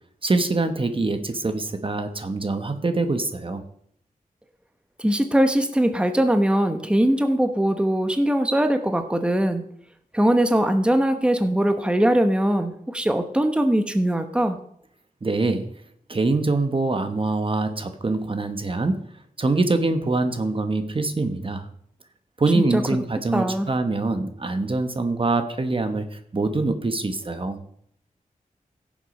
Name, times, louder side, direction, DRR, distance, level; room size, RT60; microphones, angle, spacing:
voice 1, 0.2-3.6 15.2-15.7 16.1-19.1 19.4-21.7 22.4-27.6, right 3 dB, 40° right, 8 dB, 1.0 m, -24 dB
voice 2, 5.0-9.7 10.1-14.6 22.5-22.8 23.3-23.7, right 1 dB, 5° right, 7 dB, 1.0 m, -21 dB
16.0 x 7.3 x 5.3 m, 0.69 s
wide cardioid pair, 105°, 14 cm